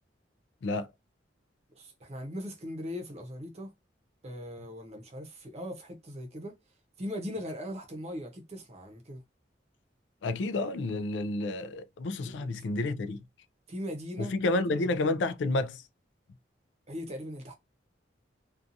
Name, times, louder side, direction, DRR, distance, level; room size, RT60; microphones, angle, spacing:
voice 1, 1.7-3.7 4.2-6.6 7.0-9.2 12.2-12.6 13.7-15.0 16.9-17.6, equal, 35° right, 0.7 m, -40 dB
voice 2, 10.2-13.2 14.2-15.8, left 2 dB, 85° left, 0.4 m, -30 dB
2.7 x 2.3 x 2.5 m
head